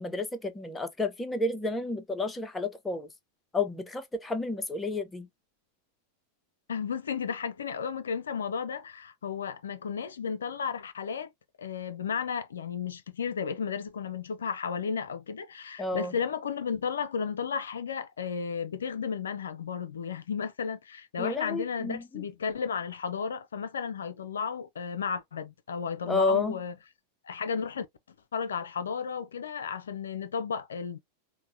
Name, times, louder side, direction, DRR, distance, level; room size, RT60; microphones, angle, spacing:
voice 1, 0.0-3.1 3.5-5.3 15.8-16.1 21.2-22.3 26.1-26.5, left 3 dB, 10° left, 0.6 m, -31 dB
voice 2, 6.7-11.3 11.6-26.7 27.2-27.9 28.3-31.0, left 6 dB, 70° left, 0.3 m, -33 dB
4.5 x 2.1 x 2.6 m
figure-of-eight pair, 90°, 0 cm